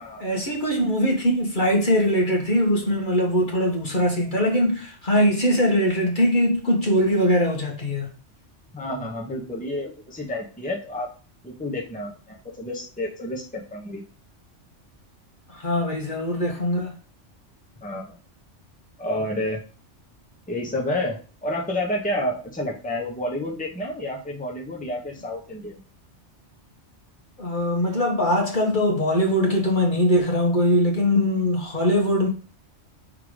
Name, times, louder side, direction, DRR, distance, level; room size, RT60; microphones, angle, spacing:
voice 1, 0.2-8.1 15.5-16.9 27.4-32.3, equal, 40° left, 1.5 m, -21 dB
voice 2, 8.7-11.1 11.4-14.0 17.8-18.2 19.0-19.6 20.5-25.8, left 1 dB, 5° left, 1.2 m, -30 dB
5.7 x 3.8 x 4.9 m
omnidirectional pair, 1.2 m